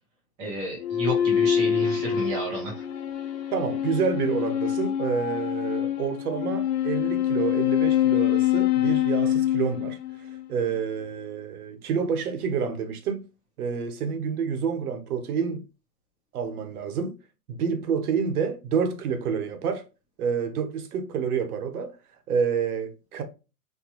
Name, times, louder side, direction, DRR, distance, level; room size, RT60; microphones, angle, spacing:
voice 1, 0.4-2.8, right 1 dB, 10° right, 0.4 m, -31 dB
sound 1, 0.8-10.4, left 10 dB, 90° left, 0.9 m, -25 dB
voice 2, 3.5-10.0 10.5-13.2 13.6-15.6 16.3-17.1 17.5-19.9 20.2-21.9 22.3-23.2, right 6 dB, 70° right, 1.0 m, -28 dB
4.4 x 2.3 x 2.9 m
hypercardioid pair, 155°, 46 cm